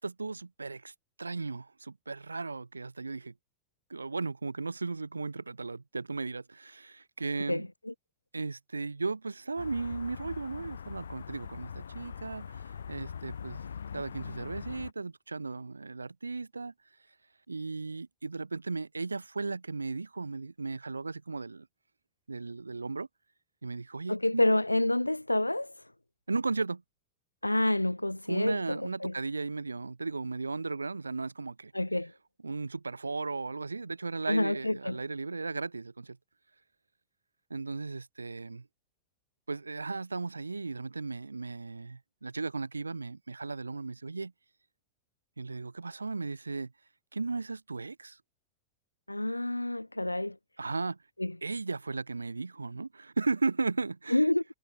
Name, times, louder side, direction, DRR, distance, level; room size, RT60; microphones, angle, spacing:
voice 1, 0.0-0.9 1.2-3.3 3.9-7.7 8.3-13.6 13.9-16.7 17.5-21.7 22.3-23.1 23.6-24.4 26.3-26.8 28.3-31.7 32.4-36.2 37.5-38.7 39.5-44.3 45.4-46.7 47.1-48.2 50.6-51.0 51.4-54.2, right 3 dB, 80° right, 0.4 m, -36 dB
voice 2, 7.5-7.9 24.1-25.7 27.4-29.1 31.7-32.1 34.3-35.0 49.1-50.4 51.2-51.4 54.1-54.4, left 1 dB, 85° left, 0.4 m, -28 dB
sound 1, 9.6-14.9, left 7 dB, 70° left, 0.8 m, -42 dB
figure-of-eight pair, 90°, 0 cm